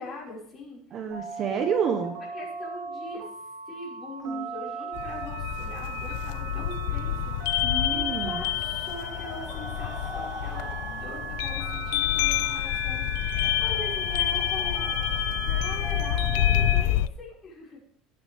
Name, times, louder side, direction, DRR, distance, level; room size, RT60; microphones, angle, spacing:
voice 1, 0.0-1.1 2.3-3.2 3.7-14.8 15.4-17.8, left 2 dB, 20° left, -5 dB, 5.6 m, -42 dB
voice 2, 0.9-2.1 4.2-4.5 7.6-8.4, right 6 dB, 30° right, 6 dB, 1.1 m, -29 dB
Telephone, 1.1-16.8, right 5 dB, 75° right, 4.3 m, -38 dB
sound 1, 5.0-17.1, left 13 dB, 85° left, 0.6 m, -28 dB
sound 2, 8.1-15.2, left 1 dB, 10° right, 3.2 m, -45 dB
18.0 x 9.7 x 3.6 m, 0.63 s
cardioid pair, 180°, 0 cm